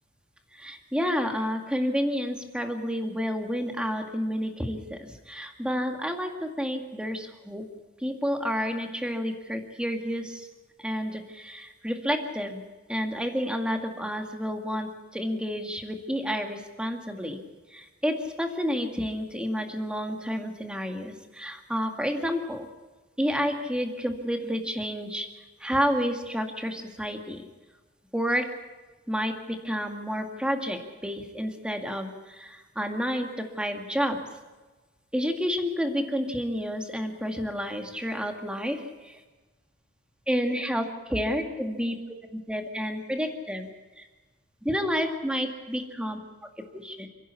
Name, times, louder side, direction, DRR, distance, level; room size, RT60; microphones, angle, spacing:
voice 1, 0.5-7.7 8.0-10.5 10.8-12.6 12.9-17.4 17.7-22.7 23.2-25.3 25.6-27.4 28.1-28.5 29.1-34.2 35.1-39.2 40.3-42.0 42.3-43.7 44.0-44.1 44.6-47.1, equal, 5° right, 4 dB, 2.1 m, -30 dB
28.5 x 11.0 x 8.3 m, 1.2 s
head